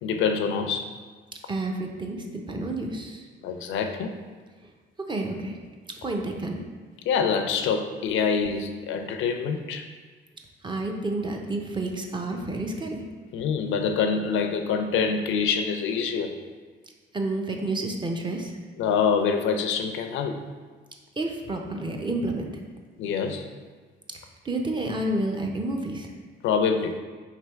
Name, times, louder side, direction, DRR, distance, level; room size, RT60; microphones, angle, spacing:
voice 1, 0.0-0.9 3.4-4.2 7.1-9.9 13.3-16.3 18.8-20.4 23.0-23.5 26.4-27.0, left 6 dB, 80° left, 7 dB, 0.4 m, -25 dB
voice 2, 1.5-3.3 5.0-5.6 6.0-6.6 10.6-13.0 17.1-18.6 21.2-22.5 24.4-26.1, right 2 dB, 25° right, 2 dB, 0.5 m, -30 dB
3.3 x 2.9 x 4.4 m, 1.4 s
cardioid pair, 90°, 20 cm